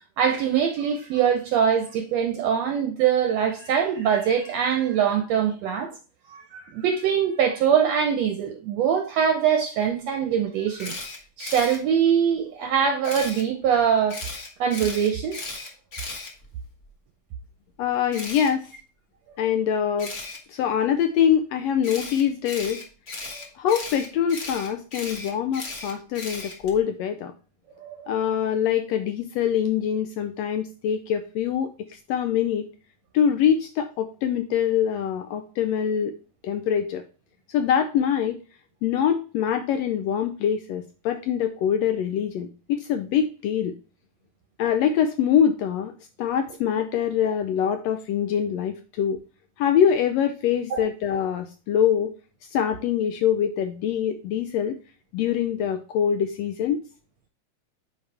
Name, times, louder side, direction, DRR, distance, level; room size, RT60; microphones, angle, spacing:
voice 1, 0.2-5.9 6.3-11.0 11.4-14.2 14.6-15.4 23.3-23.5 27.8-28.0 50.7-50.8, right 8 dB, 70° right, 1.7 m, -23 dB
Camera, 10.8-11.8 13.0-13.4 14.1-16.9 18.1-18.5 20.0-20.4 21.8-26.8, left 3 dB, 50° left, 0.8 m, -36 dB
voice 2, 17.8-18.7 19.4-20.1 20.5-22.8 23.6-27.3 28.1-32.6 33.1-36.1 36.4-37.0 37.5-38.4 38.8-43.7 44.6-45.9 46.2-49.2 49.6-52.1 52.5-54.8 55.1-56.8, left 8 dB, 85° left, 1.5 m, -24 dB
8.5 x 4.5 x 3.4 m
omnidirectional pair, 3.6 m